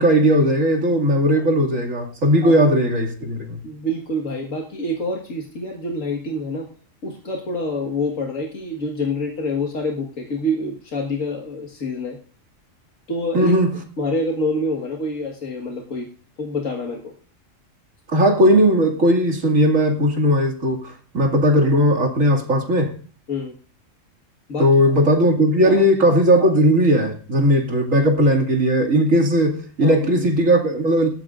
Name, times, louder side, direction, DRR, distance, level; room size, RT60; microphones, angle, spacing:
voice 1, 0.0-3.6 13.3-13.8 18.1-22.9 24.6-31.1, equal, 85° right, 2.8 m, -17 dB
voice 2, 3.6-6.7 7.0-12.2 13.1-13.5 14.0-16.1 16.4-17.1 23.3-23.5 24.5-24.7 25.6-25.8 29.8-30.0, left 1 dB, 80° left, 2.1 m, -26 dB
19.0 x 13.5 x 2.5 m
omnidirectional pair, 1.3 m